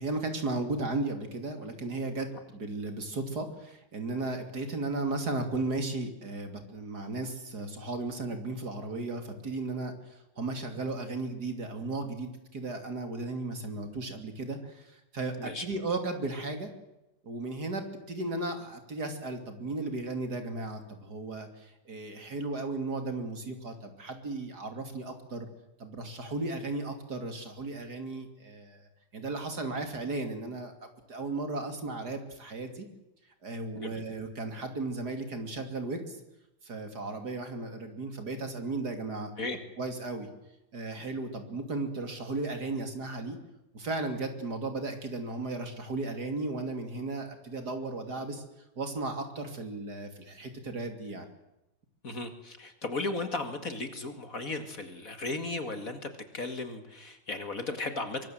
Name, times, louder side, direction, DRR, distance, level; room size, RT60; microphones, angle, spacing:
voice 1, 0.0-9.9 10.4-14.6 15.1-16.7 17.2-21.5 21.9-25.5 25.8-28.8 29.1-30.7 31.1-32.9 33.4-36.2 36.6-39.3 39.8-40.3 40.7-43.4 43.7-48.4 48.8-51.3, right 2 dB, 50° right, 7 dB, 3.4 m, -35 dB
voice 2, 52.0-58.3, left 3 dB, 45° left, 8 dB, 2.5 m, -36 dB
24.0 x 24.0 x 7.7 m, 0.90 s
omnidirectional pair, 2.2 m